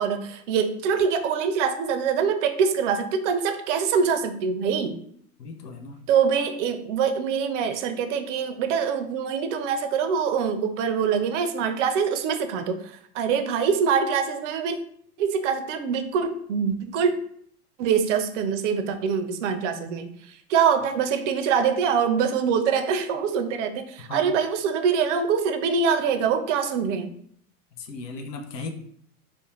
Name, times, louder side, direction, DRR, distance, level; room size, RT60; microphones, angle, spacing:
voice 1, 0.0-5.0 6.1-14.8 15.2-17.1 17.8-27.1, right 6 dB, 50° right, 8 dB, 0.5 m, -24 dB
voice 2, 5.4-6.0 24.1-24.3 27.8-28.7, left 3 dB, 85° left, 6 dB, 0.6 m, -36 dB
2.4 x 2.2 x 2.9 m, 0.64 s
hypercardioid pair, 105°, 47 cm